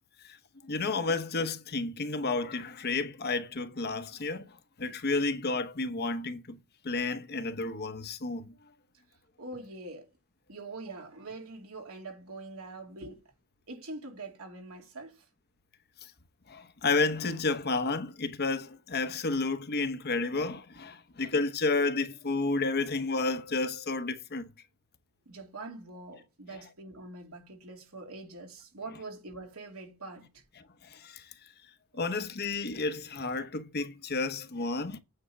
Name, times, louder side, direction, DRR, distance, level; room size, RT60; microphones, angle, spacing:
voice 1, 0.6-6.6 6.8-8.5 16.5-24.5 30.6-31.3 31.9-35.0, left 3 dB, 50° left, 0.9 m, -31 dB
voice 2, 9.4-10.1 10.5-13.2 13.7-15.1 25.3-30.3 32.0-32.1, right 2 dB, 80° right, 2.8 m, -44 dB
8.8 x 4.4 x 6.9 m
head